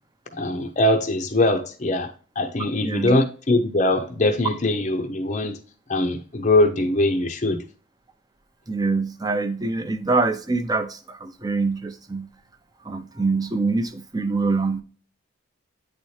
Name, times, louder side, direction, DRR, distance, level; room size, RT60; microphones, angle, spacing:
voice 1, 0.3-5.6 5.9-7.6, left 2 dB, 35° left, 0.6 m, -22 dB
voice 2, 2.8-3.2 8.7-12.3 12.8-14.8, right 3 dB, 20° right, 0.6 m, -24 dB
9.0 x 4.2 x 3.1 m
head